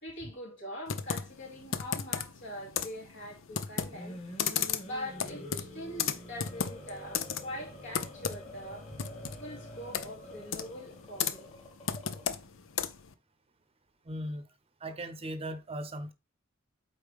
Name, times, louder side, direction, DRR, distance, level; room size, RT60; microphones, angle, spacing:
voice 1, 0.0-4.2 4.8-8.9 9.4-11.5, equal, 65° left, 2.8 m, -43 dB
Computer keyboard, 0.9-13.1, left 7 dB, 80° left, 0.7 m, -36 dB
sound 1, 3.7-12.5, left 1 dB, 35° left, 2.5 m, -47 dB
voice 2, 14.1-14.4 14.8-16.1, right 1 dB, 30° right, 0.8 m, -38 dB
8.3 x 4.5 x 3.6 m
head